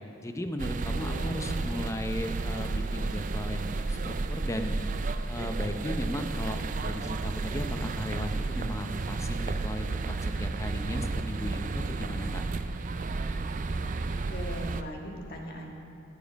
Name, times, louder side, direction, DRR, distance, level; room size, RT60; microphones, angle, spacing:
voice 1, 0.2-4.8 5.3-9.9 10.2-12.4, equal, 15° left, 6 dB, 0.7 m, -36 dB
sound 1, 0.6-14.8, right 3 dB, 40° right, 0.4 m, -32 dB
voice 2, 1.0-1.8 14.1-15.7, equal, 50° left, 0 dB, 1.7 m, -41 dB
17.5 x 7.4 x 5.2 m, 2.6 s
head